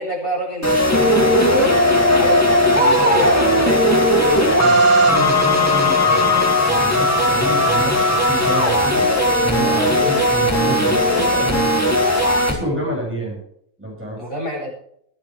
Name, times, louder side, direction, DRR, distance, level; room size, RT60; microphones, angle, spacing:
voice 1, 0.0-1.8 2.1-3.9 9.7-10.2 14.2-14.7, left 1 dB, 45° left, -5 dB, 8.3 m, -28 dB
sound 1, 0.6-12.5, left 1 dB, 10° left, 2.6 m, -16 dB
voice 2, 4.6-9.1 9.4-11.7 12.5-13.4 13.8-14.3, right 1 dB, 10° right, -4 dB, 6.8 m, -28 dB
24.5 x 10.0 x 3.4 m, 0.70 s
omnidirectional pair, 1.4 m